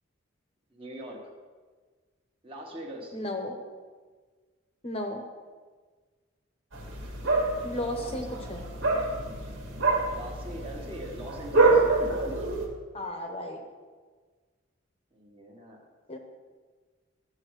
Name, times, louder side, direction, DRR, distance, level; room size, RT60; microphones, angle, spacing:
voice 1, 0.7-1.3 2.4-3.2 7.8-8.2 10.1-11.8 15.1-15.9, equal, 25° right, 0 dB, 1.3 m, -42 dB
voice 2, 3.1-3.5 4.8-5.2 7.6-8.6 12.9-13.6 16.1-16.2, left 1 dB, 30° left, 2 dB, 0.9 m, -34 dB
sound 1, 6.7-12.7, right 3 dB, 75° right, 1.9 m, -26 dB
14.0 x 7.2 x 3.2 m, 1.5 s
head